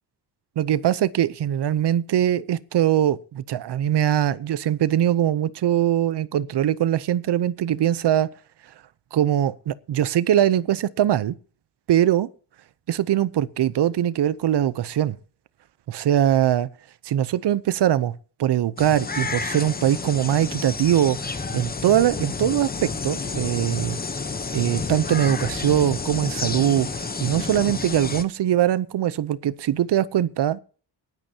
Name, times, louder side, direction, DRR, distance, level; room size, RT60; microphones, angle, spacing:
voice 1, 0.6-8.3 9.1-11.4 11.9-12.3 12.9-15.2 15.9-16.7 17.0-18.1 18.4-24.0 24.5-30.6, right 11 dB, 70° right, 0.8 m, -22 dB
sound 1, 18.8-28.2, left 4 dB, 20° left, 0.9 m, -30 dB
19.0 x 12.0 x 2.8 m
wide cardioid pair, 155°, 43 cm